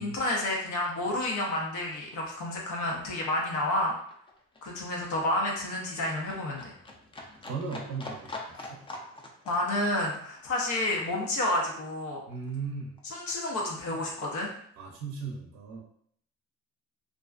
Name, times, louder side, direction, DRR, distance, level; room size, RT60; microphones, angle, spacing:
voice 1, 0.0-3.9 4.6-6.7 9.5-12.2 13.0-14.5, left 1 dB, 75° left, -2 dB, 0.6 m, -30 dB
Livestock farm animals working animals, 2.0-12.7 13.0-14.0 14.3-14.4, left 2 dB, 20° left, 0.4 m, -46 dB
voice 2, 7.5-8.3 8.7-8.8 12.3-12.9 14.8-15.8, right 5 dB, 60° right, 0 dB, 0.5 m, -36 dB
2.4 x 2.3 x 2.3 m, 0.65 s
cardioid pair, 90°, 30 cm